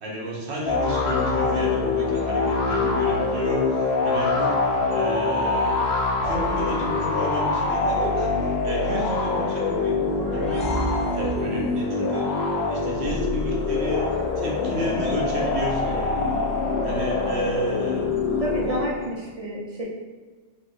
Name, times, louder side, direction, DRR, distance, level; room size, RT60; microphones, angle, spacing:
voice 1, 0.0-5.8 6.2-10.7 11.1-12.4 12.7-16.3 16.8-18.3 18.6-18.8, equal, 90° right, -3 dB, 1.0 m, -31 dB
sound 1, 0.7-19.1, left 3 dB, 75° left, 0.8 m, -24 dB
sound 2, 9.7-12.0, right 1 dB, 10° left, 0.4 m, -35 dB
voice 2, 18.4-19.8, right 1 dB, 45° right, -5 dB, 0.5 m, -29 dB
3.3 x 2.8 x 2.3 m, 1.3 s
omnidirectional pair, 1.1 m